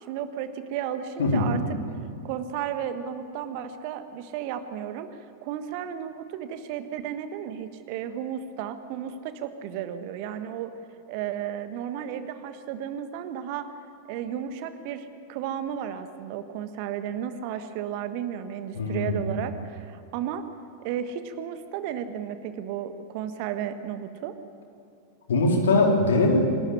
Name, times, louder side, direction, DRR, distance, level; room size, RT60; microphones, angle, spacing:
voice 1, 0.1-1.6 2.2-5.1 5.4-10.7 11.1-13.7 14.1-20.4 20.8-24.3, right 9 dB, 45° right, 10 dB, 1.4 m, -33 dB
voice 2, 1.2-1.5 18.7-19.1 25.3-26.4, left 2 dB, 65° left, 1 dB, 3.8 m, -21 dB
25.5 x 13.0 x 10.0 m, 2.4 s
figure-of-eight pair, 90°, 0 cm